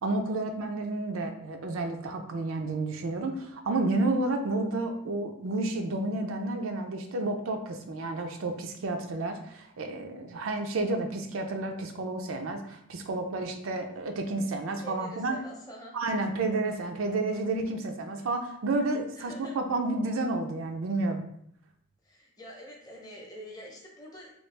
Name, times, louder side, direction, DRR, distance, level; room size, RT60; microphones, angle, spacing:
voice 1, 0.0-15.4 15.9-21.2, right 2 dB, 80° right, 4 dB, 0.4 m, -31 dB
voice 2, 14.8-16.0 19.1-19.6 22.0-24.3, equal, 20° left, -2 dB, 0.7 m, -45 dB
3.0 x 2.3 x 3.2 m, 0.70 s
head